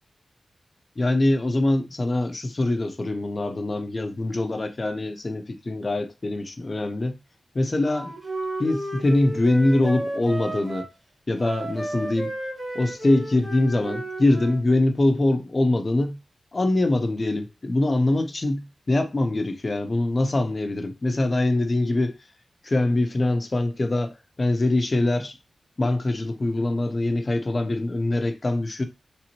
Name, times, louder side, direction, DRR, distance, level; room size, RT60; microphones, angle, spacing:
voice 1, 1.0-7.2 7.5-8.1 8.6-10.9 11.3-12.3 12.7-16.2 16.5-22.2 22.6-25.4 25.8-28.8, left 2 dB, 40° left, 0.8 m, -23 dB
Wind instrument woodwind instrument, 7.8-10.9 11.4-14.6, right 1 dB, 35° right, 2.1 m, -33 dB
4.3 x 3.4 x 3.0 m
wide cardioid pair, 85°, 0 cm